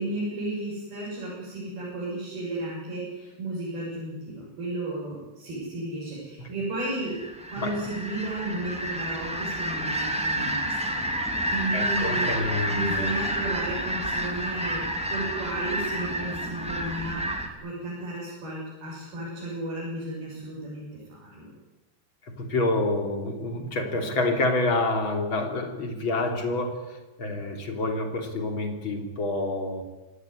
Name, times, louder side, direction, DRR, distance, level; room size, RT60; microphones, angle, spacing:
voice 1, 0.0-7.2 7.5-11.0 11.5-12.3 12.7-21.5, right 2 dB, 60° right, -6 dB, 8.9 m, -33 dB
sound 1, 7.1-17.5, right 1 dB, ahead, 1.7 m, -29 dB
voice 2, 11.7-13.3 22.3-29.8, left 2 dB, 30° left, 4 dB, 3.3 m, -28 dB
25.5 x 18.0 x 9.9 m, 1.1 s
omnidirectional pair, 4.9 m